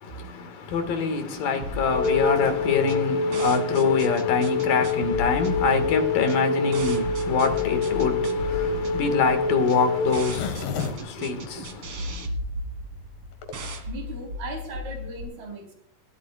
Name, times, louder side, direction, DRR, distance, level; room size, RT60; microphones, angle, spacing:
voice 1, 0.0-12.3, left 5 dB, 70° left, 3.5 m, -25 dB
sound 1, 1.6-15.2, left 1 dB, 45° right, 2.5 m, -36 dB
Wind instrument woodwind instrument, 1.8-10.2, left 4 dB, 45° left, 7.6 m, -26 dB
Zipper (clothing), 7.8-12.1 12.6-12.7 12.9-13.0 13.2-13.5, left 6 dB, 85° left, 3.7 m, -35 dB
voice 2, 13.9-15.7, right 3 dB, 75° right, 5.9 m, -37 dB
27.0 x 12.5 x 2.4 m
omnidirectional pair, 4.4 m